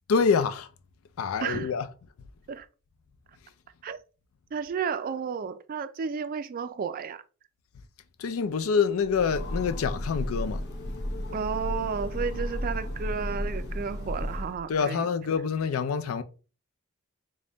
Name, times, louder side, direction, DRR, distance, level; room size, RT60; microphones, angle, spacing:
voice 1, 0.1-0.7 1.2-1.9 8.2-10.6 14.7-16.2, left 5 dB, 80° left, 0.4 m, -26 dB
voice 2, 1.4-1.7 2.5-2.7 3.8-4.0 4.5-7.2 11.3-15.1, right 6 dB, 45° right, 0.3 m, -32 dB
Train, 9.0-14.7, left 1 dB, 55° left, 0.8 m, -33 dB
3.4 x 2.1 x 3.8 m
head